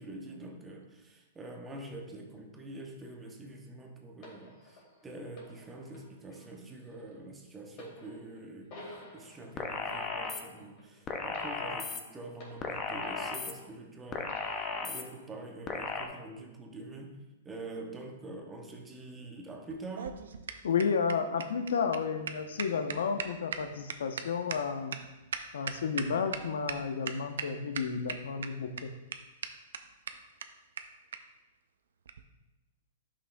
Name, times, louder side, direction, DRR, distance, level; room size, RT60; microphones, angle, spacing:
voice 1, 0.0-8.8 9.1-14.4 14.8-17.2 17.4-20.2, right 2 dB, 10° right, 2 dB, 0.7 m, -45 dB
sound 1, 4.2-13.9 14.3-15.3 16.1-16.2, left 1 dB, 35° left, 2.1 m, -53 dB
sound 2, 9.6-10.4 11.1-12.0 12.6-13.5 14.1-15.0 15.7-16.1, left 4 dB, 20° left, 0.5 m, -35 dB
sound 3, 19.7-26.4 26.7-26.8 27.1-27.5 27.8-28.5 28.8-28.9 29.1-29.2 29.4-29.5 29.7-29.8 30.1-30.2 30.4-30.5 30.8-30.9 31.1-31.2 32.1-32.2, right 7 dB, 90° right, 0.5 m, -37 dB
voice 2, 20.6-25.0 25.5-28.9, left 6 dB, 85° left, 7 dB, 0.7 m, -32 dB
9.6 x 5.8 x 2.2 m, 1.1 s
hypercardioid pair, 155°, 0 cm